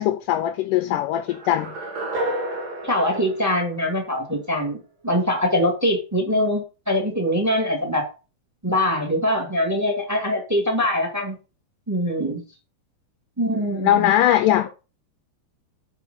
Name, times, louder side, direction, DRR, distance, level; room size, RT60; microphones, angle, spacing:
voice 1, 0.0-1.8 13.7-14.7, left 12 dB, 80° left, 2.0 m, -20 dB
sound 1, 1.3-4.4, right 1 dB, 70° right, 3.8 m, -31 dB
voice 2, 2.8-8.1 8.6-11.4 11.9-12.4 13.4-14.1, left 1 dB, 10° right, 1.2 m, -23 dB
8.1 x 5.0 x 5.4 m
omnidirectional pair, 4.3 m